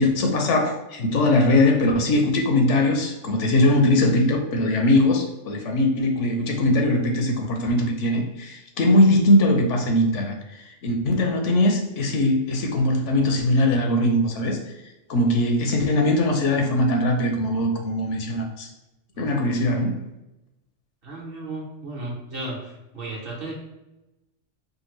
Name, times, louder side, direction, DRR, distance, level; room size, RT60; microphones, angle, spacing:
voice 1, 0.0-14.6 15.1-18.7 19.2-20.0, left 1 dB, 70° left, 3 dB, 1.0 m, -21 dB
voice 2, 21.0-23.5, right 2 dB, 50° right, -3 dB, 1.2 m, -34 dB
5.0 x 2.2 x 3.1 m, 0.97 s
omnidirectional pair, 1.3 m